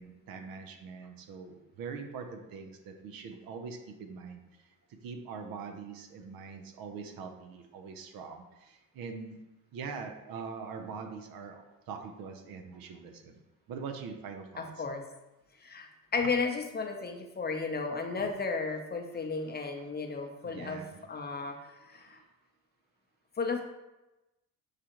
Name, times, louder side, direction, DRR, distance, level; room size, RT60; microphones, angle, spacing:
voice 1, 0.0-4.4 5.0-9.4 9.7-13.4 13.7-14.7 19.2-19.3 20.4-21.5 21.9-22.2, right 5 dB, 75° right, 5 dB, 0.7 m, -43 dB
voice 2, 14.6-15.0 15.6-15.9 16.1-20.8 21.1-22.2 23.4-23.6, left 4 dB, 30° left, 4 dB, 0.6 m, -34 dB
6.5 x 2.4 x 2.9 m, 1.0 s
supercardioid pair, 65°, 36 cm